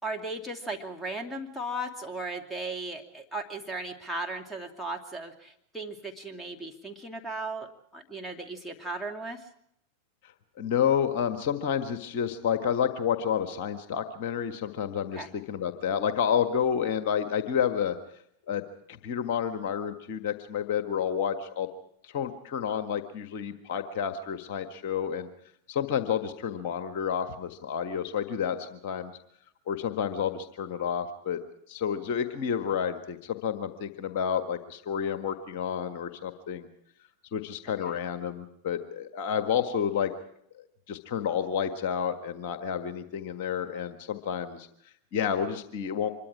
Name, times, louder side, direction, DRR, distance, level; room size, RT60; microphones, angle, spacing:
voice 1, 0.0-9.4 15.1-15.3 37.9-38.0, right 2 dB, ahead, 2 dB, 2.6 m, -36 dB
voice 2, 10.6-18.0 18.5-18.6 18.9-21.7 22.0-25.3 25.7-29.1 29.7-31.4 31.7-36.7 37.3-40.1 40.9-44.7 45.1-46.1, left 8 dB, 45° left, 8 dB, 1.6 m, -30 dB
25.5 x 22.5 x 4.8 m, 0.73 s
figure-of-eight pair, 90°, 0 cm